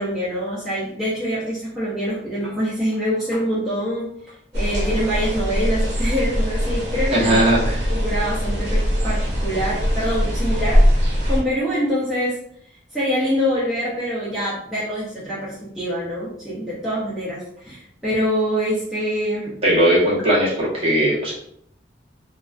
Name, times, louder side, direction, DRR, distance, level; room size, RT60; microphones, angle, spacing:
voice 1, 0.0-4.1 4.5-7.5 7.9-10.9 11.3-12.4 12.9-19.6, equal, ahead, -11 dB, 0.5 m, -25 dB
sound 1, 4.5-11.4, equal, 80° right, 0.7 m, -21 dB
voice 2, 7.1-7.8 19.6-21.3, right 1 dB, 30° right, -7 dB, 0.8 m, -18 dB
2.3 x 2.2 x 2.3 m, 0.69 s
head